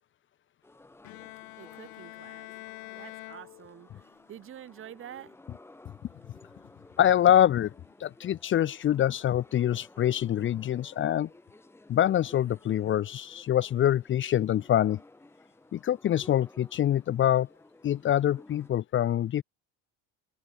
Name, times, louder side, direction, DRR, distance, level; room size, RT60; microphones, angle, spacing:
sound 1, 0.6-18.7, left 2 dB, 5° left, 6.2 m, -55 dB
Bowed string instrument, 1.0-4.2, left 25 dB, 80° left, 3.8 m, -46 dB
voice 1, 1.6-2.5 3.0-3.9 4.3-5.4, right 10 dB, 35° right, 7.8 m, -47 dB
voice 2, 7.0-7.7 8.0-11.3 11.9-15.0 15.7-17.5 17.8-19.4, left 11 dB, 35° left, 1.4 m, -25 dB
cardioid pair, 180°, 35 cm